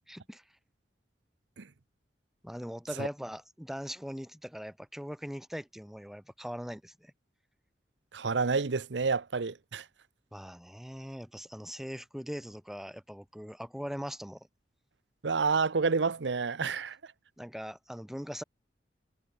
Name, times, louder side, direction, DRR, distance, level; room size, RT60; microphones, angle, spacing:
voice 1, 0.1-0.4 2.4-7.1 10.3-14.5 17.4-18.4, equal, ahead, 2.4 m, -41 dB
voice 2, 8.1-9.8 15.2-17.0, right 4 dB, 85° right, 0.7 m, -29 dB
head